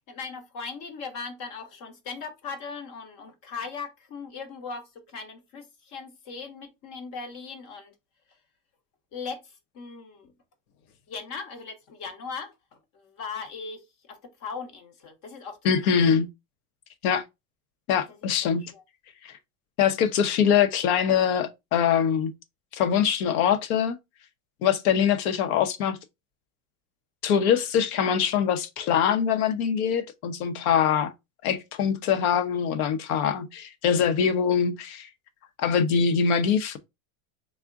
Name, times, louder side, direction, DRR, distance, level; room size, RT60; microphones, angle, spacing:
voice 1, 0.1-7.9 8.3-8.4 9.1-10.3 11.1-15.6 18.1-18.2 18.4-18.8, left 5 dB, 40° left, 0.8 m, -39 dB
voice 2, 15.6-16.3 17.0-17.2 17.9-18.6 19.2-19.3 19.8-22.3 22.7-24.0 24.6-26.0 27.2-31.1 31.4-35.1 35.6-36.8, left 7 dB, 75° left, 0.7 m, -23 dB
3.4 x 2.1 x 3.5 m
supercardioid pair, 155°, 44 cm